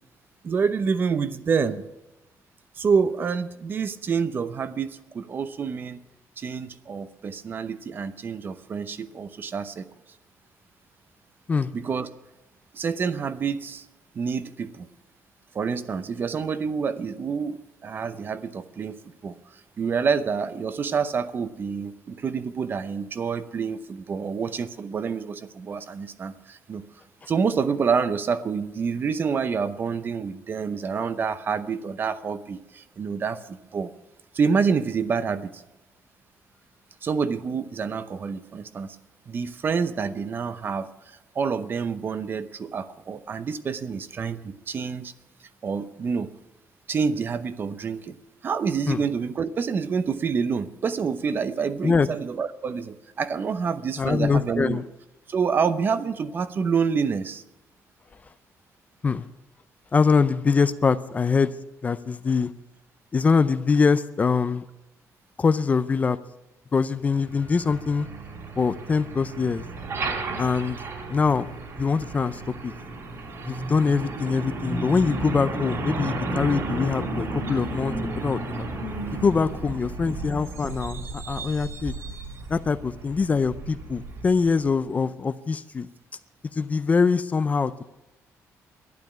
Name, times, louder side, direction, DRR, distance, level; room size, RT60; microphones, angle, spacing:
voice 1, 0.4-1.8 2.8-6.0 6.4-9.8 11.7-12.1 12.7-13.8 14.1-14.9 15.5-19.0 19.2-19.4 19.8-26.8 27.3-33.9 34.3-35.6 37.0-39.0 39.3-45.1 45.6-46.3 46.9-48.1 48.4-54.8 55.3-57.4, right 5 dB, 35° right, 13 dB, 0.8 m, -27 dB
voice 2, 54.0-54.8 59.0-59.3 59.9-61.5 61.8-62.5 63.1-64.6 65.4-66.2 66.7-68.1 68.6-69.6 70.4-70.8 71.1-72.7 73.4-78.4 79.1-81.9 82.5-85.9 86.5-87.9, left 5 dB, 25° left, 13 dB, 0.5 m, -23 dB
Truck, 67.1-84.7, right 2 dB, 50° right, 3.6 m, -33 dB
12.0 x 11.0 x 9.5 m, 0.95 s
cardioid pair, 160°, 6 cm